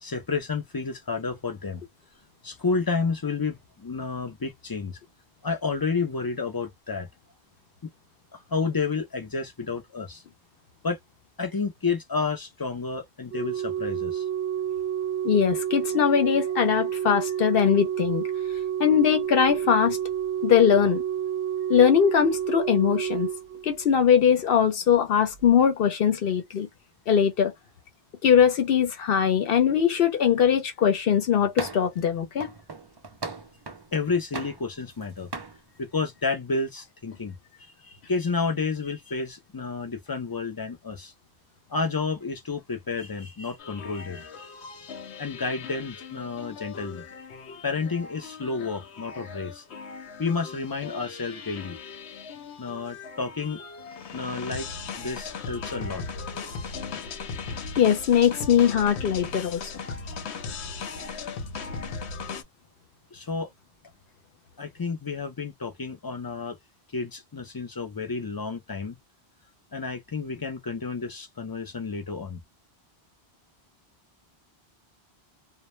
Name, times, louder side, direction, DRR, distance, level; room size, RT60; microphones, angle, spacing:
voice 1, 0.0-1.8 2.4-5.0 5.4-7.1 8.3-10.2 10.8-11.0 11.4-14.3 33.9-35.3 35.8-37.3 37.6-41.1 41.7-44.5 45.2-47.0 47.6-49.6 50.2-51.8 52.6-53.6 54.1-54.7 55.0-56.0 63.1-63.5 64.6-66.6 66.9-69.0 69.7-72.4, left 4 dB, 35° left, 0.3 m, -30 dB
Organ, 13.3-24.2 25.3-25.5, right 10 dB, 65° right, 0.7 m, -29 dB
voice 2, 15.2-18.2 18.8-20.0 20.4-21.0 21.7-23.3 23.6-26.7 27.1-27.5 28.2-32.5 57.8-59.7, left 8 dB, 65° left, 0.8 m, -21 dB
sound 1, 31.6-32.0 32.4-33.9 34.3-35.0 35.3-35.6, right 4 dB, 40° right, 0.3 m, -37 dB
sound 2, 43.6-62.4, left 5 dB, 90° left, 0.9 m, -38 dB
2.1 x 2.1 x 3.0 m
omnidirectional pair, 1.1 m